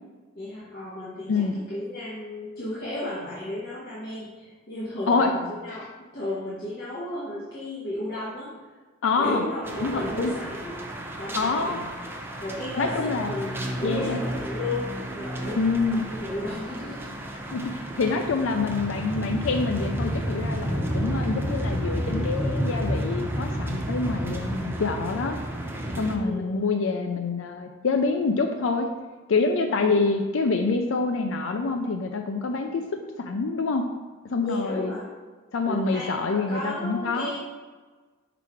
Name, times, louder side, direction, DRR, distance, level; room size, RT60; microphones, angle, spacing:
voice 1, 0.3-5.9 6.1-8.5 9.2-10.8 11.2-11.8 12.4-14.9 15.1-17.1 26.0-26.5 29.6-30.0 34.4-35.0 35.7-37.4, left 1 dB, 50° left, -10 dB, 1.5 m, -34 dB
voice 2, 1.3-1.6 5.1-5.3 5.7-5.8 9.0-9.4 9.8-10.3 11.3-11.8 12.8-13.3 13.8-14.2 15.6-16.0 17.5-17.7 18.0-25.4 26.0-28.9 29.3-33.9 34.3-34.9 35.5-37.4, left 4 dB, 75° left, 5 dB, 0.5 m, -26 dB
sound 1, 9.6-26.1, right 1 dB, 10° right, 0.7 m, -31 dB
5.6 x 4.0 x 4.7 m, 1.3 s
head